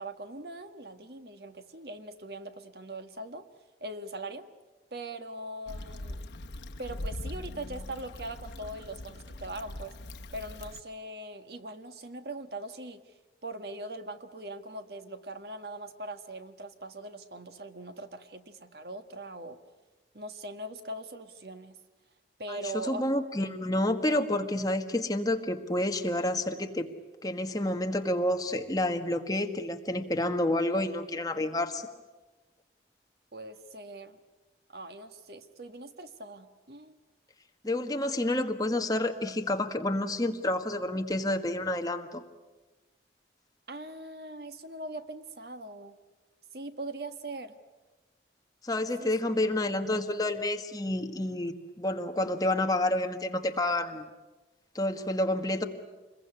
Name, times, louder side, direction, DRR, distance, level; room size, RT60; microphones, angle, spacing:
voice 1, 0.0-3.5 3.8-4.5 4.9-6.2 6.8-9.9 10.3-13.1 13.4-19.6 20.1-21.8 22.4-23.1 33.3-34.2 34.7-37.0 43.7-45.9 46.5-47.5 49.0-49.1, right 2 dB, 65° right, 9 dB, 1.6 m, -41 dB
Stream / Traffic noise roadway noise / Trickle dribble, 5.7-10.8, left 1 dB, 85° left, 1.0 m, -41 dB
voice 2, 22.5-26.9 27.2-31.9 37.6-42.2 48.6-54.1 54.7-55.6, left 1 dB, 20° left, 5 dB, 1.5 m, -29 dB
27.5 x 22.0 x 9.7 m, 1.2 s
head